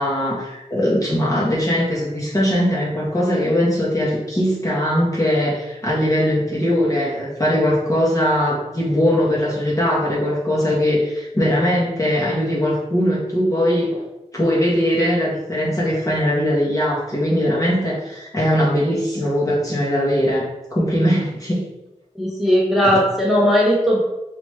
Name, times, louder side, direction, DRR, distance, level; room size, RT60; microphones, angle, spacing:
voice 1, 0.0-14.0 14.3-21.6, equal, 25° left, -6 dB, 1.1 m, -20 dB
voice 2, 22.1-24.0, equal, ahead, -6 dB, 1.0 m, -17 dB
3.3 x 2.9 x 3.1 m, 0.96 s
wide cardioid pair, 65°, 13 cm